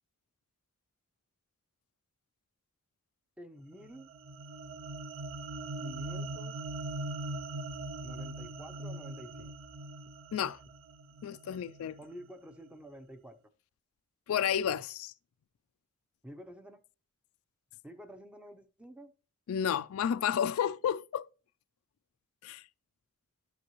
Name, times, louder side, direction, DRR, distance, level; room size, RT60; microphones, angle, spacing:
voice 1, 3.4-4.1 5.8-6.6 8.0-9.5 12.0-13.4 16.2-16.8 17.8-19.1, equal, 5° right, 0.6 m, -49 dB
sound 1, 3.8-12.3, right 2 dB, 65° right, 0.5 m, -41 dB
voice 2, 11.2-12.0 14.3-15.1 19.5-21.3 22.4-22.6, left 8 dB, 80° left, 0.3 m, -31 dB
12.0 x 5.5 x 3.0 m
head